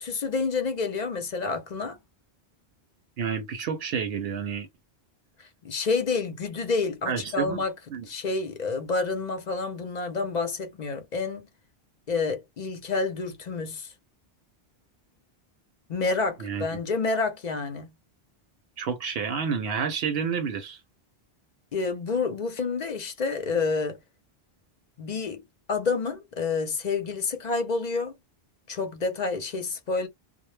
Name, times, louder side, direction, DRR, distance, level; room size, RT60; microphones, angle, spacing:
voice 1, 0.0-2.0 5.4-7.7 8.1-11.5 12.1-13.9 15.9-17.9 21.7-24.0 25.0-25.4 25.7-28.1 28.7-30.1, left 4 dB, 50° left, 0.6 m, -29 dB
voice 2, 3.2-4.7 7.1-7.6 7.9-8.1 16.4-16.7 18.8-20.8, right 6 dB, 75° right, 0.8 m, -29 dB
2.1 x 2.0 x 3.1 m
omnidirectional pair, 1.1 m